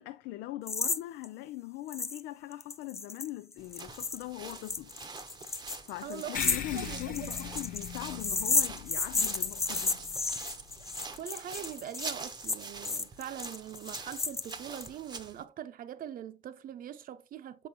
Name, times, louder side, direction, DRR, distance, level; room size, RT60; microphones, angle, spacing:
voice 1, 0.0-5.0 5.9-10.0, left 16 dB, 90° left, 0.4 m, -41 dB
sound 1, 0.7-1.0 1.2-1.3 1.9-2.2 2.5-14.9, left 4 dB, 15° left, 0.4 m, -33 dB
sound 2, 3.6-15.4, right 4 dB, 25° right, 0.8 m, -45 dB
voice 2, 6.0-7.5 11.2-17.7, right 10 dB, 55° right, 0.7 m, -42 dB
sound 3, 6.3-11.2, left 8 dB, 55° left, 0.7 m, -42 dB
6.9 x 5.3 x 2.8 m
cardioid pair, 110°, 17 cm